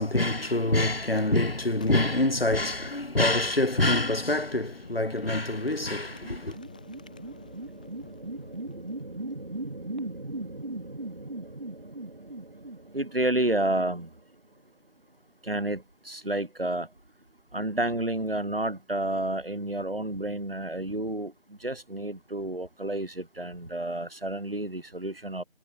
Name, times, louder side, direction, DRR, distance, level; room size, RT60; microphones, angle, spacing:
voice 1, 0.0-6.6, left 2 dB, 75° left, 2.5 m, -26 dB
Boom, 1.7-11.3, left 4 dB, 10° left, 2.3 m, -50 dB
sound 1, 4.8-14.5, right 2 dB, 50° right, 4.8 m, -39 dB
voice 2, 12.9-14.1 15.5-16.9 17.5-21.3 21.6-25.4, right 1 dB, 65° right, 4.0 m, -30 dB
figure-of-eight pair, 170°, 30 cm